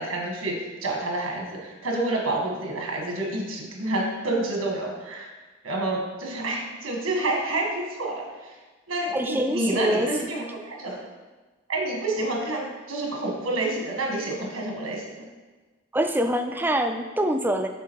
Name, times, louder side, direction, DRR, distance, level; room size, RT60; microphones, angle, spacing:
voice 1, 0.0-5.3 5.6-8.6 8.9-11.1 11.7-15.2, right 2 dB, 85° right, 0 dB, 1.5 m, -28 dB
voice 2, 9.1-10.1 15.9-17.7, equal, 10° right, 6 dB, 0.3 m, -24 dB
7.2 x 3.8 x 4.6 m, 1.3 s
head